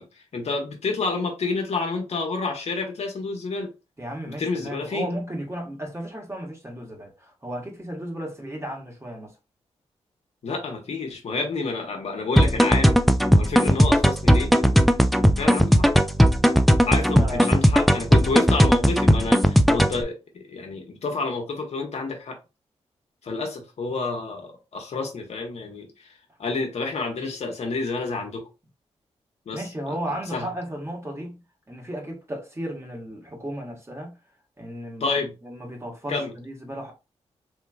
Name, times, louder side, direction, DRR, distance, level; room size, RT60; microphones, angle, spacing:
voice 1, 0.0-3.7 4.3-5.1 10.4-13.0 13.3-14.8 15.4-15.9 16.9-22.4 23.2-26.1 26.4-28.4 29.5-30.5 35.0-35.3 36.1-36.3, left 3 dB, 65° left, 1.0 m, -29 dB
voice 2, 4.0-9.3 16.8-17.5 29.5-31.4 31.7-34.2 34.6-35.1 35.4-36.9, right 1 dB, 25° right, 1.4 m, -34 dB
sound 1, 12.4-20.0, equal, ahead, 0.4 m, -18 dB
3.2 x 3.0 x 2.3 m
cardioid pair, 50°, 12 cm